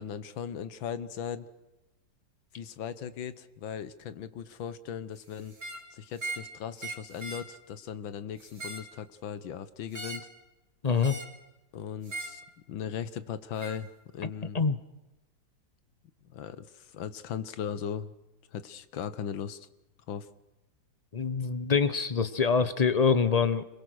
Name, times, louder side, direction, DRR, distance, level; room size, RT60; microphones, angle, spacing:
voice 1, 0.0-1.5 2.5-5.6 5.9-10.3 11.7-12.4 12.7-13.9 14.1-14.6 16.2-18.1 18.5-19.7 20.1-20.3, left 8 dB, 85° left, 14 dB, 1.9 m, -38 dB
sound 1, 5.5-5.9 6.2-6.5 6.8-7.5 8.4-8.9 9.9-10.3 11.0-11.4 12.1-12.4 13.6-13.8, right 2 dB, 25° right, 2.3 m, -39 dB
voice 2, 10.8-11.2 14.5-14.8 21.1-23.6, left 5 dB, 35° left, 13 dB, 0.6 m, -25 dB
26.5 x 22.5 x 6.4 m, 0.99 s
omnidirectional pair, 2.1 m